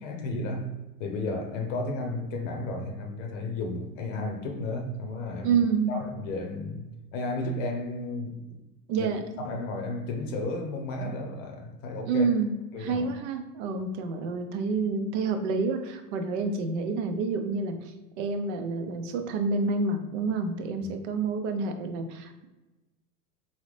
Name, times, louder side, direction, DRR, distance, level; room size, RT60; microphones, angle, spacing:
voice 1, 0.0-5.6 5.9-8.7 9.0-9.1 9.4-12.3 12.7-13.1 20.8-20.9, left 2 dB, 55° left, 0.8 m, -33 dB
voice 2, 5.4-5.9 8.9-9.2 12.1-12.5 12.8-22.5, right 4 dB, 50° right, 0.7 m, -28 dB
3.9 x 2.8 x 3.2 m
hypercardioid pair, 100°, 45 cm